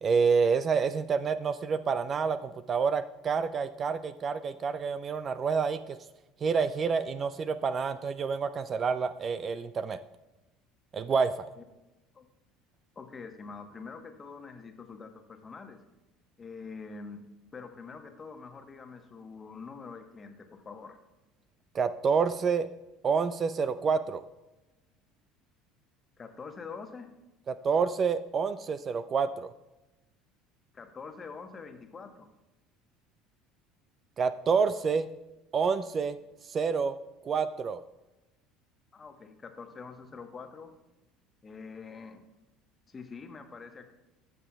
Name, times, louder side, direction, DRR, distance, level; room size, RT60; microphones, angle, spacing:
voice 1, 0.0-6.0 6.4-10.0 10.9-11.5 21.7-22.7 23.0-24.2 27.5-29.5 34.2-35.1 35.5-36.2 36.5-36.9 37.2-37.8, right 5 dB, 35° right, 13 dB, 0.4 m, -28 dB
voice 2, 12.9-15.8 16.4-21.0 26.2-27.1 30.7-32.3 38.9-40.7 41.4-42.2 42.9-43.9, left 5 dB, 25° left, 6 dB, 1.1 m, -45 dB
14.0 x 6.8 x 2.3 m, 1.0 s
figure-of-eight pair, 65°, 0 cm